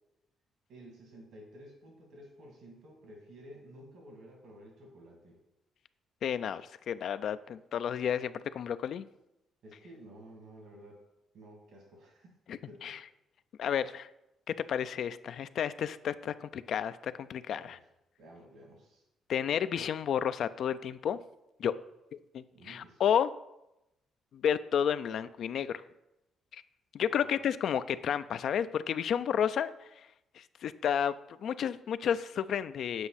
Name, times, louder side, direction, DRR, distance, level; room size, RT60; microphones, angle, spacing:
voice 1, 0.7-5.4 9.6-11.0 11.3-12.3 12.7-13.0 17.5-17.9 18.2-19.0 22.5-23.0 27.1-27.4, right 1 dB, 75° right, 0 dB, 2.4 m, -52 dB
voice 2, 6.2-9.1 12.5-13.0 13.6-14.1 14.7-17.8 19.3-21.2 21.6-21.7 22.3-23.3 24.3-25.8 26.5-26.6 26.9-29.7 30.4-31.1 31.4-33.1, left 8 dB, 65° left, 13 dB, 0.3 m, -31 dB
7.9 x 4.7 x 4.1 m, 0.90 s
cardioid pair, 90°, 0 cm